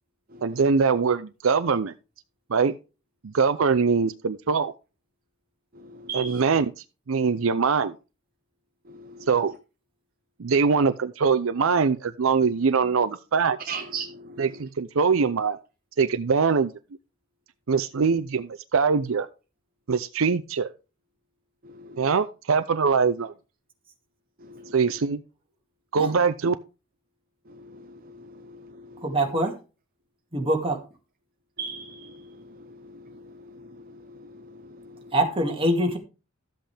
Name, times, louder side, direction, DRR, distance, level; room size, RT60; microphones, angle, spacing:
voice 1, 0.4-1.9 2.5-2.7 3.2-4.7 6.1-8.0 9.3-9.5 10.4-13.8 14.4-15.6 16.0-16.7 17.7-19.3 19.9-20.7 22.0-23.3 24.7-25.2 25.9-26.5, right 5 dB, 75° right, 0.6 m, -23 dB
voice 2, 6.0-6.4 8.9-9.3 13.7-14.4 21.6-22.0 24.5-24.7 27.6-28.6 28.9-29.0 31.6-32.2, right 5 dB, 45° right, 0.8 m, -37 dB
voice 3, 29.0-29.6 30.3-30.8 35.1-36.0, right 1 dB, 25° right, 2.2 m, -24 dB
13.0 x 7.9 x 3.4 m
head